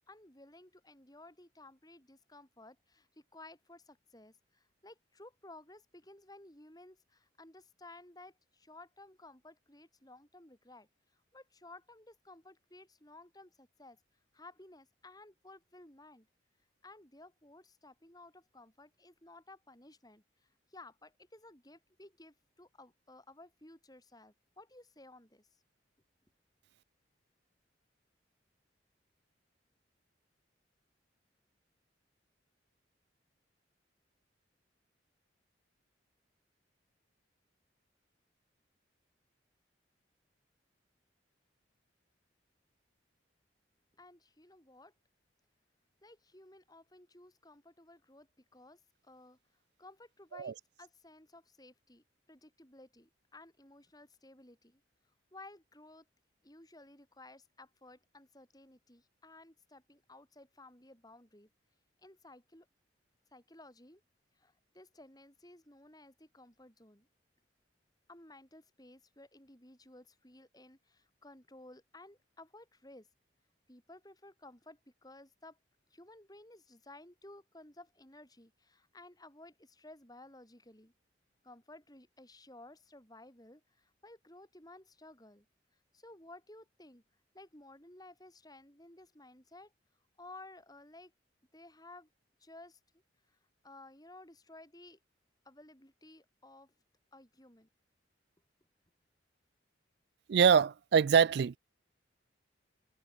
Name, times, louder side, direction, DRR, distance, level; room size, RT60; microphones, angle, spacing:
voice 1, 0.1-14.0 14.3-16.3 16.8-25.5 44.0-44.9 46.0-49.4 49.8-54.8 55.3-56.1 56.4-61.5 62.0-62.7 63.3-64.0 64.3-67.1 68.1-73.1 73.7-75.6 75.9-80.9 81.4-85.5 85.9-87.0 87.3-89.7 90.2-91.1 91.5-92.1 92.4-92.8 93.6-95.0 95.4-96.7 97.1-97.7, left 2 dB, 20° left, 5.7 m, -56 dB
voice 2, 100.3-101.6, right 7 dB, 60° right, 0.3 m, -24 dB
head